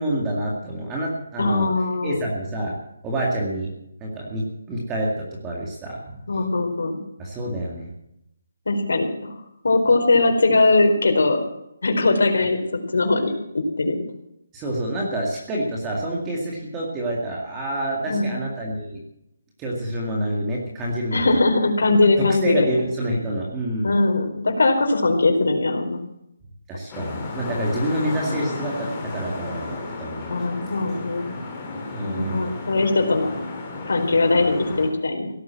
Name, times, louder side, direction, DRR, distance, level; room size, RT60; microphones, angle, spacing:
voice 1, 0.0-1.7 2.0-2.8 3.0-3.7 4.0-6.3 7.2-7.9 14.5-19.0 19.6-21.4 22.2-23.9 26.7-30.3 31.9-32.5, right 1 dB, 10° right, -3 dB, 2.1 m, -27 dB
voice 2, 1.4-2.2 6.3-7.0 8.7-9.3 9.6-11.4 11.8-12.6 12.9-13.3 13.8-14.0 18.1-18.3 21.1-22.7 23.8-26.0 30.3-31.3 32.0-33.3 33.9-35.3, left 3 dB, 65° left, 3 dB, 4.5 m, -20 dB
sound 1, 26.9-34.9, left 3 dB, 10° left, 3.1 m, -33 dB
17.0 x 9.5 x 7.5 m, 0.80 s
hypercardioid pair, 180°, 0 cm